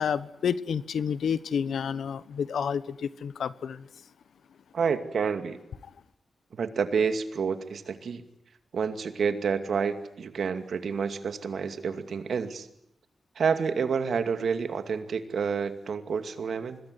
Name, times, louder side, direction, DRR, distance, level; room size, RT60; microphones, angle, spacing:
voice 1, 0.0-3.8, left 7 dB, 90° left, 16 dB, 1.1 m, -30 dB
voice 2, 4.7-5.6 6.6-8.2 8.7-12.7 13.4-16.8, right 6 dB, 75° right, 9 dB, 2.4 m, -29 dB
25.5 x 21.0 x 9.8 m, 0.77 s
cardioid pair, 90°, 0 cm